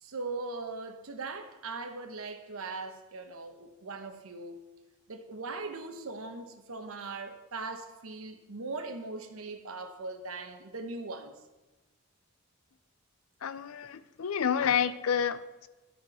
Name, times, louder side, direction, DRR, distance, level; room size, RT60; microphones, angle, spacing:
voice 1, 0.0-4.6 5.1-11.3, right 3 dB, 80° right, 1.0 m, -40 dB
voice 2, 13.4-15.7, left 7 dB, 90° left, 0.5 m, -29 dB
13.0 x 4.5 x 5.8 m
head